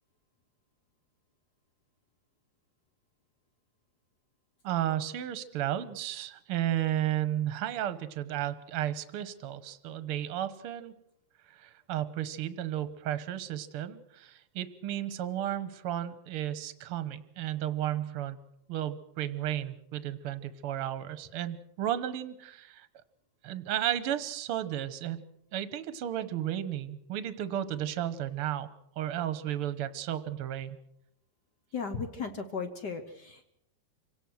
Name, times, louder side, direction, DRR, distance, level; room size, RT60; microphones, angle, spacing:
voice 1, 4.6-10.9 11.5-18.4 18.7-22.9 23.4-25.2 25.5-28.7 29.0-30.8, right 12 dB, 60° right, 13 dB, 1.7 m, -33 dB
voice 2, 31.7-33.5, left 5 dB, 55° left, 8 dB, 1.2 m, -36 dB
26.5 x 17.5 x 6.3 m, 0.77 s
omnidirectional pair, 3.5 m